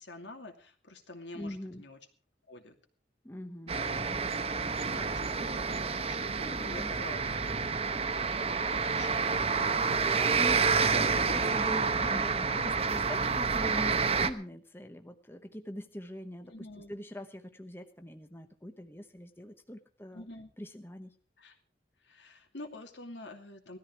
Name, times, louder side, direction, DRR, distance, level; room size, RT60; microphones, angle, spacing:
voice 1, 0.0-2.0 2.5-2.8 3.7-4.0 4.9-5.8 6.1-7.3 8.5-9.6 10.1-10.5 11.1-11.4 16.5-16.9 20.1-20.5 21.4-21.6 22.0-23.8, left 2 dB, 75° left, 5 dB, 2.5 m, -47 dB
voice 2, 1.3-1.8 3.2-4.3 6.6-6.9 10.2-16.5 16.9-20.3 20.6-21.2, equal, 10° left, 7 dB, 0.9 m, -42 dB
sound 1, 3.7-14.3, right 5 dB, 35° right, 0.9 m, -29 dB
17.5 x 13.5 x 4.7 m, 0.40 s
head